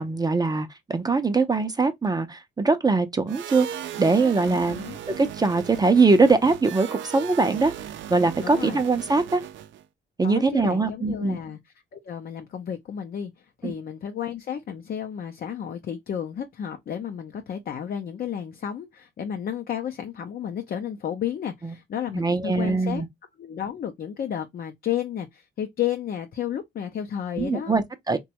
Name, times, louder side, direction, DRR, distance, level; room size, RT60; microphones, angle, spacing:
voice 1, 0.0-3.7 4.0-4.8 5.2-7.7 8.1-9.4 10.2-11.4 13.6-13.7 22.1-23.1 27.4-28.2, right 3 dB, 20° right, 0.5 m, -22 dB
sound 1, 3.3-9.8, right 10 dB, 70° right, 0.5 m, -37 dB
voice 2, 4.5-5.0 8.4-8.8 10.2-23.0 23.4-27.8, left 9 dB, 50° left, 0.5 m, -32 dB
3.0 x 2.2 x 2.8 m
cardioid pair, 90°, 20 cm